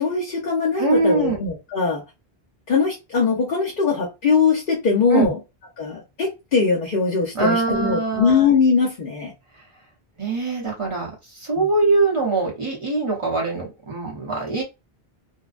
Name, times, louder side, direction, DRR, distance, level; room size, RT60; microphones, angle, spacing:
voice 1, 0.0-2.0 2.7-5.4 5.8-9.3 11.6-11.7, left 5 dB, 60° left, 0.9 m, -21 dB
voice 2, 0.8-1.4 5.1-5.3 7.3-8.5 10.2-14.6, right 3 dB, 35° right, 0.9 m, -22 dB
2.6 x 2.1 x 2.4 m
omnidirectional pair, 1.0 m